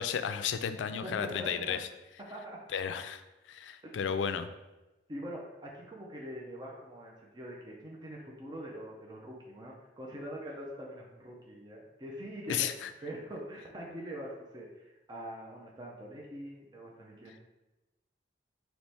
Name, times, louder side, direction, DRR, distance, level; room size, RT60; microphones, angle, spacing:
voice 1, 0.0-1.8 2.7-3.2 3.5-4.5 12.5-12.9, left 7 dB, 85° left, 10 dB, 0.3 m, -33 dB
voice 2, 0.8-1.8 2.3-2.6 3.8-4.0 5.1-12.7 13.0-17.4, equal, 25° right, -2 dB, 0.5 m, -44 dB
4.1 x 3.0 x 3.4 m, 1.0 s
head